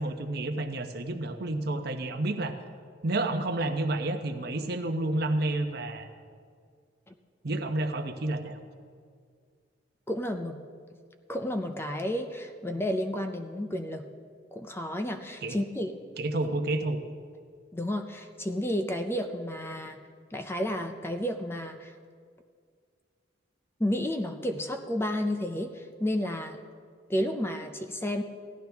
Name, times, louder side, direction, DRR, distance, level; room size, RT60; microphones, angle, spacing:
voice 1, 0.0-2.6 3.0-6.1 7.4-8.6 15.4-15.6 16.2-17.0, right 2 dB, 55° right, 6 dB, 0.9 m, -30 dB
voice 2, 10.1-10.6 11.3-14.0 14.5-16.0 17.7-20.0 20.3-21.9 23.8-26.6 27.1-28.2, left 1 dB, 15° left, 6 dB, 0.5 m, -31 dB
16.0 x 11.5 x 3.5 m, 2.1 s
head